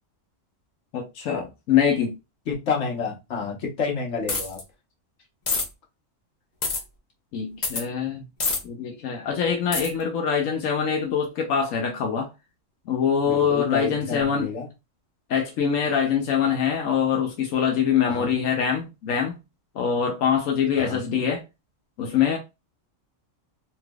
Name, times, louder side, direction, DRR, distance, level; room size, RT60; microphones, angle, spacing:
voice 1, 0.9-2.1 7.3-8.2 8.6-12.3 12.9-14.5 15.3-19.4 19.7-21.4 22.0-22.4, left 7 dB, 85° left, 1.1 m, -24 dB
voice 2, 2.5-4.6 13.2-14.7 18.0-18.4 20.7-21.1, left 5 dB, 65° left, 1.3 m, -29 dB
sound 1, 4.3-4.6 5.5-5.7 6.6-6.8 7.6-7.8 8.4-8.6 9.7-9.9, left 4 dB, 40° left, 0.9 m, -25 dB
3.3 x 2.8 x 2.2 m
omnidirectional pair, 1.3 m